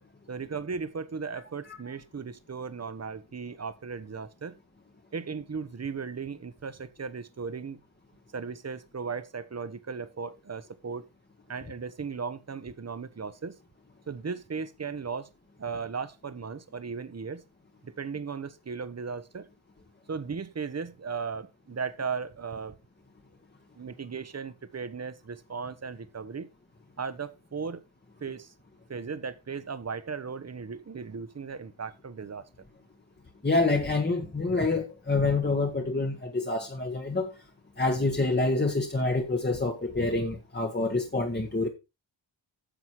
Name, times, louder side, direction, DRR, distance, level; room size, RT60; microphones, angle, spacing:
voice 1, 0.3-4.5 5.1-7.8 8.3-11.1 11.5-13.5 14.1-15.3 15.6-17.4 17.8-19.5 20.1-22.8 23.7-26.5 27.0-27.8 28.2-28.5 28.9-32.4, right 5 dB, 35° right, 1.1 m, -36 dB
voice 2, 33.4-37.3 37.8-41.7, left 3 dB, 20° left, 1.4 m, -27 dB
10.0 x 7.0 x 4.7 m
wide cardioid pair, 105°, 47 cm